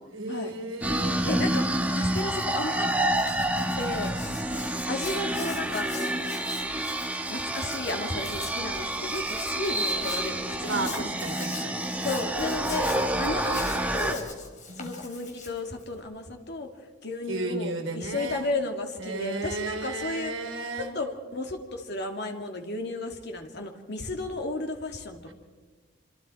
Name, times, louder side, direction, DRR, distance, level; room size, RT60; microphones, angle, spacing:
voice 1, 0.0-1.2 10.6-11.9 14.7-15.0 17.3-18.5 19.0-20.9 25.3-25.4, right 2 dB, 85° right, 5 dB, 3.7 m, -34 dB
sound 1, 0.8-14.1, right 1 dB, 10° right, 1.5 m, -28 dB
voice 2, 1.2-2.9 3.6-4.1 4.9-6.1 7.3-11.1 11.6-11.7 12.0-14.3 14.8-16.7 17.0-20.3 20.9-25.3, left 2 dB, 60° left, 3 dB, 2.7 m, -33 dB
Hands, 1.4-16.0, left 5 dB, 40° left, 3.4 m, -44 dB
27.0 x 26.0 x 4.6 m, 1.4 s
head